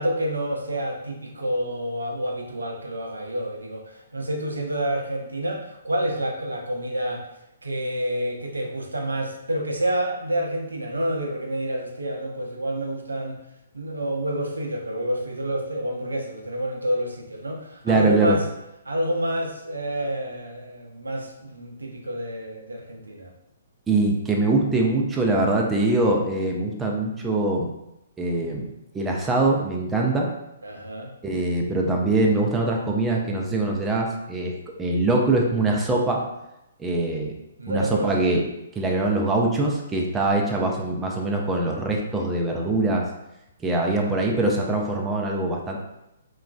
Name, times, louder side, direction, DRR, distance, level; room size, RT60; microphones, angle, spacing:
voice 1, 0.0-7.3 7.6-13.4 13.7-18.4 18.9-23.3 30.6-31.1 37.6-38.3, right 1 dB, 85° right, 1 dB, 0.5 m, -28 dB
voice 2, 17.8-18.4 23.9-27.7 28.2-28.7 28.9-30.3 31.2-36.2 36.8-37.3 37.7-38.4 38.8-43.1 43.6-45.8, right 2 dB, 10° right, -1 dB, 0.4 m, -23 dB
3.0 x 2.3 x 2.2 m, 0.87 s
figure-of-eight pair, 130°, 0 cm